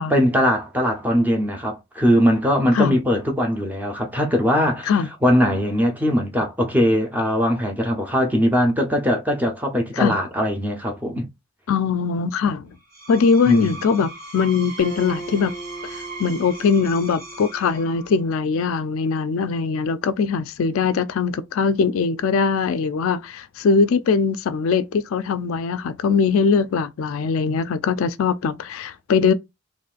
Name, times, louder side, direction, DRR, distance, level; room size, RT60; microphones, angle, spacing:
voice 1, 0.1-4.9 5.2-11.3 13.4-13.8, equal, 10° right, 0.5 m, -20 dB
voice 2, 11.7-12.7 13.1-15.6 15.9-29.3, left 5 dB, 65° left, 0.3 m, -21 dB
Screech, 12.8-18.3, right 2 dB, 40° right, 1.6 m, -39 dB
Acoustic guitar, 14.8-18.3, right 2 dB, 75° right, 1.3 m, -38 dB
3.9 x 3.1 x 2.4 m
head